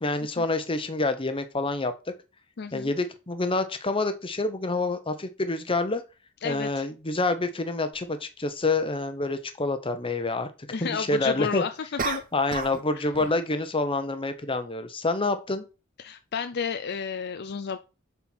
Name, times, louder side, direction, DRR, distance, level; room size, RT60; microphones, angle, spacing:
voice 1, 0.0-1.9 2.7-6.0 6.4-10.5 10.8-11.6 12.3-15.6, left 2 dB, 25° left, 9 dB, 1.0 m, -27 dB
voice 2, 2.6-2.9 6.4-6.8 10.7-12.2 12.9-13.1 16.0-17.8, left 6 dB, 50° left, 9 dB, 0.5 m, -31 dB
sound 1, 7.9-8.0 12.0-12.9 13.1-13.5, right 5 dB, 40° right, 0.9 m, -32 dB
7.3 x 4.5 x 6.2 m, 0.31 s
head